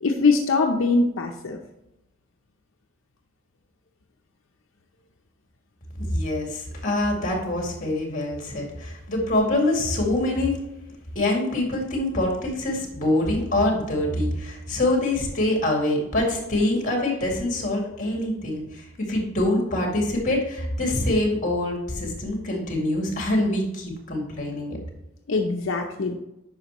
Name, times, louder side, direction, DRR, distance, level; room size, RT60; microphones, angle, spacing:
voice 1, 0.0-1.6 25.3-26.2, left 3 dB, 80° left, 3 dB, 0.7 m, -22 dB
voice 2, 6.0-10.6 11.2-24.8, left 1 dB, 40° left, 0 dB, 2.2 m, -25 dB
9.6 x 5.8 x 3.0 m, 0.90 s
head